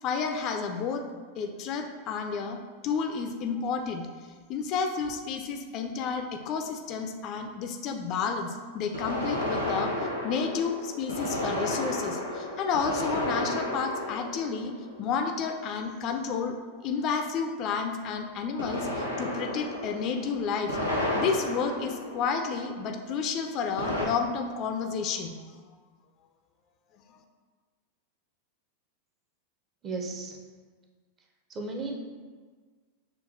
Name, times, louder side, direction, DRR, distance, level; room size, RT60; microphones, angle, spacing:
voice 1, 0.0-1.1 1.4-4.1 4.5-20.8 21.1-25.3, left 5 dB, 35° left, 4 dB, 0.3 m, -31 dB
sound 1, 5.0-5.1 8.9-15.4 18.6-22.8 23.8-24.1, left 1 dB, 90° right, 0.7 m, -32 dB
voice 2, 29.8-30.4 31.5-31.9, right 3 dB, 25° right, 1 dB, 0.5 m, -34 dB
6.4 x 2.2 x 2.5 m, 1.5 s
figure-of-eight pair, 90°, 0 cm